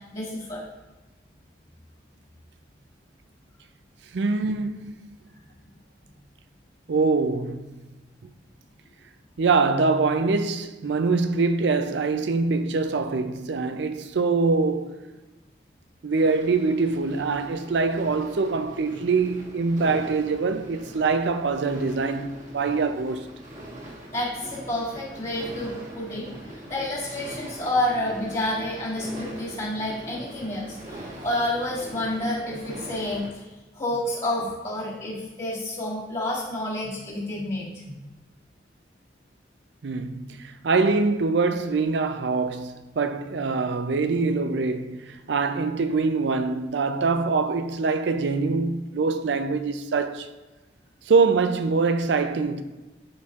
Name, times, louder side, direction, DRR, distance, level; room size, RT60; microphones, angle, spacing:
voice 1, 0.1-0.6 24.1-26.2 26.5-33.5 33.7-38.0, left 1 dB, 40° left, 1.6 m, -29 dB
voice 2, 4.1-5.0 6.9-7.9 8.2-8.3 9.4-15.0 16.0-23.3 39.8-50.3 51.1-52.6, right 4 dB, 75° right, 0.4 m, -24 dB
sound 1, 16.1-33.3, right 1 dB, 45° right, 1.3 m, -42 dB
12.5 x 4.2 x 2.4 m
head